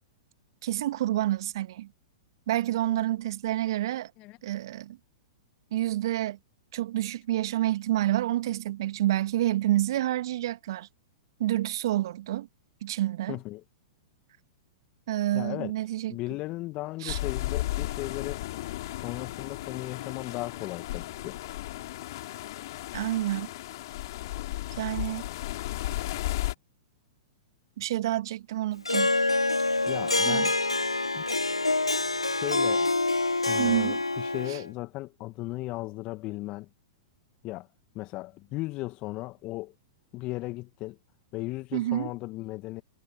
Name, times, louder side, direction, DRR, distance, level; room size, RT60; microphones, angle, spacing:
voice 1, 0.6-1.9 2.5-4.1 4.4-5.0 5.7-6.4 6.7-10.9 11.4-12.5 12.8-13.4 15.1-16.1 17.0-17.2 22.9-23.5 24.8-25.2 27.8-29.1 30.3-30.5 33.6-34.0 34.5-34.6 41.7-42.1, right 14 dB, 55° right, 1.6 m, -28 dB
voice 2, 13.3-13.6 15.3-15.7 16.1-18.4 19.0-21.4 29.9-30.6 31.1-31.2 32.4-32.9 33.5-36.7 37.4-37.7 37.9-39.7 40.1-41.0 41.3-42.8, left 20 dB, 35° left, 1.9 m, -36 dB
sound 1, 17.1-26.5, left 16 dB, 50° left, 3.6 m, -34 dB
Harp, 28.8-34.7, left 2 dB, 90° left, 0.8 m, -26 dB
figure-of-eight pair, 105°, 3 cm